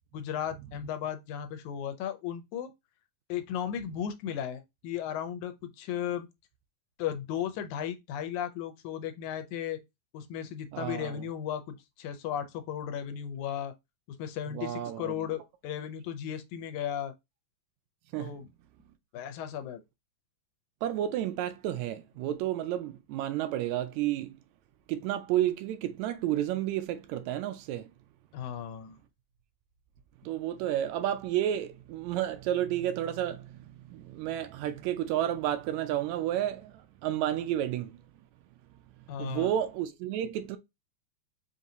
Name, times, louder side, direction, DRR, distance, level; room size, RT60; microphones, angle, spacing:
voice 1, 0.1-2.7 3.3-6.3 7.0-9.8 10.1-13.7 14.1-17.1 18.2-18.5 19.1-19.8 28.3-29.0 39.1-39.5, left 9 dB, 80° left, 2.0 m, -35 dB
voice 2, 10.7-11.2 14.5-15.3 18.1-18.4 20.8-24.4 24.9-27.9 30.2-38.0 39.2-40.6, right 12 dB, 80° right, 1.8 m, -31 dB
5.3 x 2.8 x 2.6 m
omnidirectional pair, 3.4 m